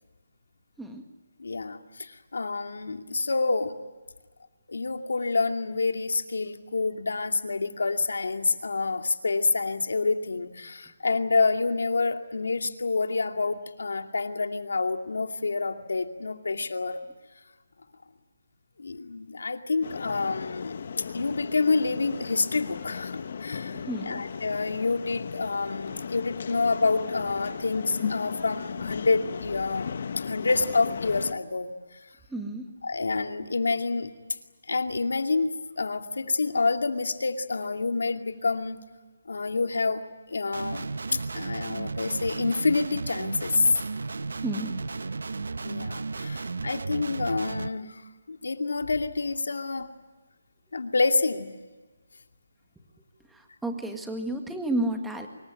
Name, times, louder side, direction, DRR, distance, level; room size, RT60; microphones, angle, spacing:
voice 1, 1.4-3.8 4.7-17.0 18.8-31.7 32.8-34.1 34.7-38.8 39.3-43.8 45.6-48.0 48.3-49.9 50.7-51.5, left 3 dB, 85° left, 5 dB, 2.4 m, -28 dB
sound 1, 19.8-31.3, left 6 dB, 50° left, 1.2 m, -36 dB
voice 2, 23.7-24.2 32.3-32.7 44.4-44.7 53.3-55.3, right 1 dB, 5° right, 4 dB, 1.8 m, -31 dB
Guitar, 40.5-47.7, right 4 dB, 80° right, 0.9 m, -34 dB
25.0 x 22.5 x 9.1 m, 1.3 s
hypercardioid pair, 170°, 0 cm